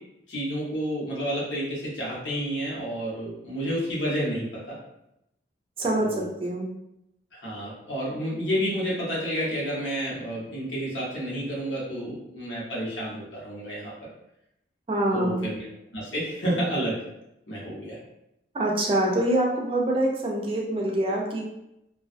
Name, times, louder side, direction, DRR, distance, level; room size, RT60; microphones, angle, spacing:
voice 1, 0.3-4.8 6.0-6.3 7.3-14.1 15.1-17.0 17.5-18.0, equal, 80° left, -6 dB, 0.9 m, -30 dB
voice 2, 5.8-6.7 14.9-15.4 18.5-21.4, right 1 dB, 30° right, -2 dB, 0.4 m, -25 dB
2.3 x 2.2 x 2.5 m, 0.83 s
head